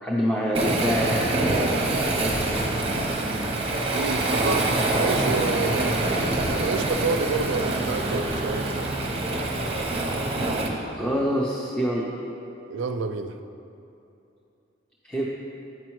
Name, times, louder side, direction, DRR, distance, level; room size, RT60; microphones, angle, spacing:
voice 1, 0.0-1.3 2.2-2.4 10.9-12.1 15.0-15.3, equal, 5° left, -4 dB, 0.6 m, -25 dB
Waves surf, 0.5-10.7, right 2 dB, 30° right, 0.7 m, -25 dB
voice 2, 3.9-4.7 4.9-6.1 6.5-8.9 12.7-13.3, right 4 dB, 75° right, 7 dB, 0.4 m, -29 dB
9.2 x 6.0 x 3.0 m, 2.8 s
head